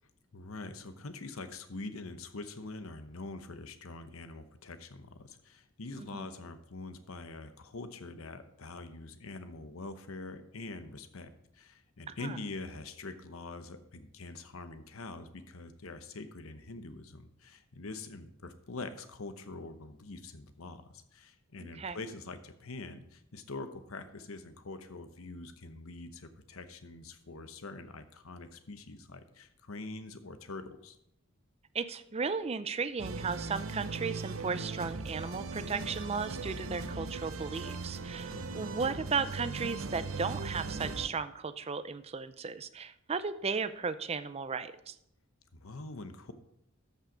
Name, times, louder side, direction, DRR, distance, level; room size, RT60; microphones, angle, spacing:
voice 1, 0.3-31.0 38.3-38.7 45.5-46.3, left 3 dB, 80° left, 10 dB, 0.9 m, -44 dB
voice 2, 12.1-12.4 21.6-22.0 31.7-44.9, right 5 dB, 30° right, 13 dB, 0.5 m, -35 dB
sound 1, 33.0-41.1, right 3 dB, 70° right, 0.7 m, -39 dB
13.5 x 5.6 x 5.1 m, 0.78 s
head